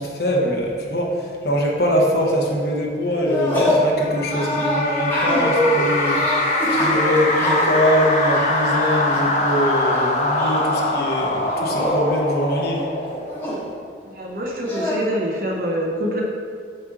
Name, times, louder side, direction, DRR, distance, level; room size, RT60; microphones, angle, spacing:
voice 1, 0.0-12.9, equal, 60° left, -1 dB, 1.0 m, -23 dB
sound 1, 3.2-3.9 4.3-9.5 9.9-10.8 11.4-12.0 12.4-12.5 12.7-13.6 14.7-14.9, equal, 10° left, 1.3 m, -24 dB
sound 2, 4.0-13.7, left 2 dB, 40° left, 0.6 m, -23 dB
voice 2, 14.0-16.2, equal, 50° right, -2 dB, 0.9 m, -25 dB
7.6 x 3.1 x 4.7 m, 2.2 s
head